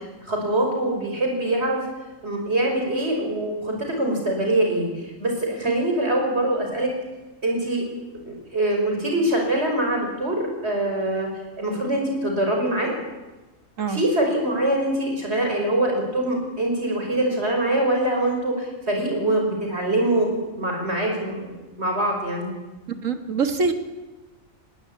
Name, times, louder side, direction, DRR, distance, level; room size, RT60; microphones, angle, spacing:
voice 1, 0.0-1.8 2.2-6.9 7.4-7.9 8.2-11.3 11.6-12.9 13.9-22.5, right 1 dB, 50° right, 1 dB, 5.8 m, -24 dB
voice 2, 22.9-23.7, right 4 dB, 70° right, 7 dB, 2.1 m, -24 dB
20.0 x 18.5 x 8.8 m, 1.1 s
omnidirectional pair, 1.4 m